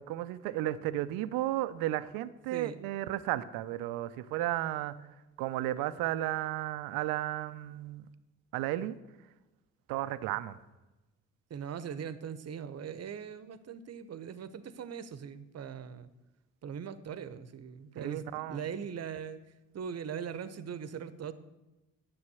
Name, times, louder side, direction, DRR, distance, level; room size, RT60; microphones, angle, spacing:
voice 1, 0.0-8.1 8.5-9.0 9.9-10.6 18.0-18.6, right 14 dB, 85° right, 14 dB, 0.6 m, -34 dB
voice 2, 11.5-16.1 16.6-19.4 19.7-21.3, right 7 dB, 45° right, 14 dB, 0.9 m, -40 dB
9.8 x 7.0 x 7.0 m, 1.0 s
supercardioid pair, 60°, 34 cm